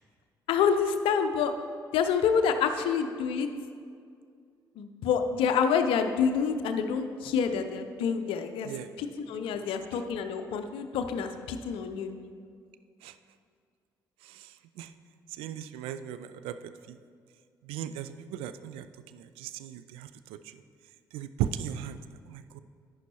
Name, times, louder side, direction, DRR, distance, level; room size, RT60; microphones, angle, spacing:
voice 1, 0.5-1.5 1.9-3.5 4.8-8.7 9.0-12.1, left 6 dB, 60° left, 8 dB, 0.6 m, -27 dB
voice 2, 14.2-14.9 15.3-16.6 16.9-17.0 17.6-18.9 19.1-20.5 21.1-22.0 22.3-22.6, right 10 dB, 60° right, 12 dB, 0.4 m, -37 dB
11.0 x 9.0 x 2.9 m, 2.2 s
figure-of-eight pair, 45°, 10 cm